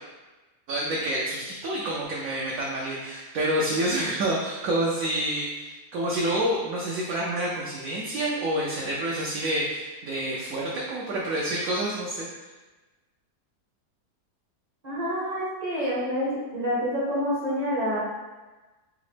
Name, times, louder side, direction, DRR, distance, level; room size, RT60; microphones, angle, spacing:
voice 1, 0.7-12.3, right 1 dB, 65° right, -5 dB, 0.9 m, -28 dB
voice 2, 14.8-18.0, equal, 35° right, -7 dB, 0.7 m, -27 dB
4.9 x 2.1 x 3.2 m, 1.2 s
omnidirectional pair, 1.8 m